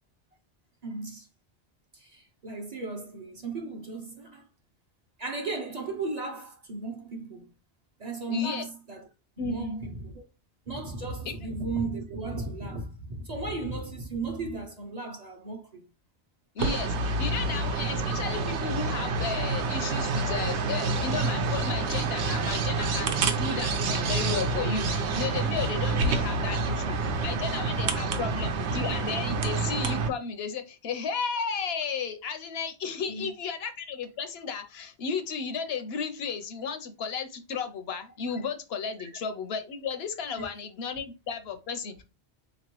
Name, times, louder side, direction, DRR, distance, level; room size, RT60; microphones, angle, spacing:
voice 1, 0.8-1.3 1.9-4.4 5.2-7.5 8.0-9.1 9.4-10.2 10.7-15.8 27.1-27.4 28.8-28.9 33.1-33.3 39.0-39.1 40.4-40.5, right 3 dB, 40° right, 0.8 m, -35 dB
voice 2, 8.3-8.6 9.4-9.8 11.3-11.4 16.5-42.0, left 5 dB, 70° left, 0.8 m, -33 dB
sound 1, 16.6-30.1, right 3 dB, 80° right, 0.9 m, -28 dB
4.1 x 3.0 x 3.0 m
omnidirectional pair, 1.2 m